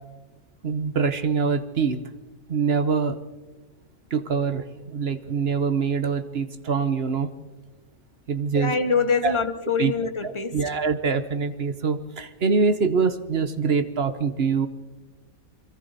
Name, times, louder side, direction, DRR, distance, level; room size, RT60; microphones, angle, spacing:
voice 1, 0.6-2.0 2.5-3.2 4.1-7.3 8.3-8.7 9.2-9.3 9.8-9.9 10.2-14.7, right 5 dB, 50° right, 1.1 m, -24 dB
voice 2, 8.5-10.6, left 4 dB, 25° left, 0.9 m, -24 dB
29.0 x 22.5 x 4.1 m
omnidirectional pair, 1.5 m